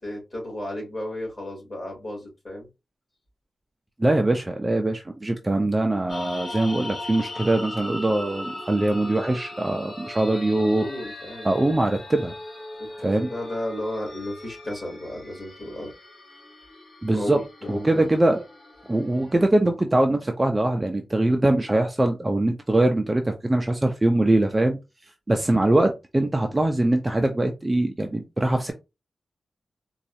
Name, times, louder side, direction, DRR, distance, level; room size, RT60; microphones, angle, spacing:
voice 1, 0.0-2.7 10.6-11.5 12.8-15.9 17.1-18.1, left 1 dB, 25° left, 2.1 m, -34 dB
voice 2, 4.0-10.9 11.4-12.3 13.0-13.3 17.0-17.4 17.7-18.4 18.9-24.8 25.3-28.7, right 1 dB, 15° right, 0.4 m, -22 dB
sound 1, 6.1-19.5, left 1 dB, 45° left, 1.1 m, -39 dB
4.1 x 2.3 x 2.7 m
wide cardioid pair, 155°, 0 cm